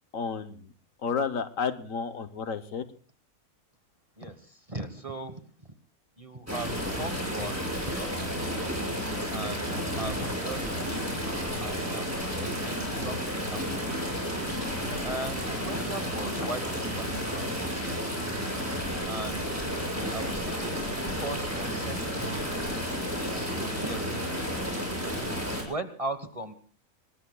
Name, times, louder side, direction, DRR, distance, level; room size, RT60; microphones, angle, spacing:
voice 1, 0.1-0.7 1.0-2.9, left 5 dB, 65° left, 10 dB, 1.2 m, -31 dB
voice 2, 4.2-5.7 6.2-8.4 9.3-14.0 15.0-18.1 19.1-19.7 20.1-22.5 23.2-24.3 25.7-26.5, right 2 dB, 25° right, 8 dB, 1.1 m, -39 dB
sound 1, 6.5-25.6, equal, 10° right, 5.9 m, -32 dB
26.5 x 20.0 x 2.3 m, 0.40 s
omnidirectional pair, 1.6 m